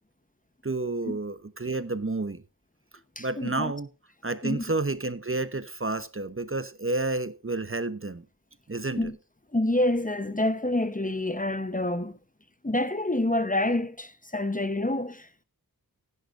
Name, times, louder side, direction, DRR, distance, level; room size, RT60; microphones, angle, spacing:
voice 1, 0.6-2.4 3.2-3.9 4.2-8.2 8.7-9.1, right 2 dB, 35° right, 0.8 m, -30 dB
voice 2, 3.2-3.7 4.4-4.6 9.0-9.2 9.5-12.2 12.6-15.4, left 1 dB, 20° left, 0.9 m, -27 dB
16.5 x 10.5 x 2.5 m
wide cardioid pair, 55°, 38 cm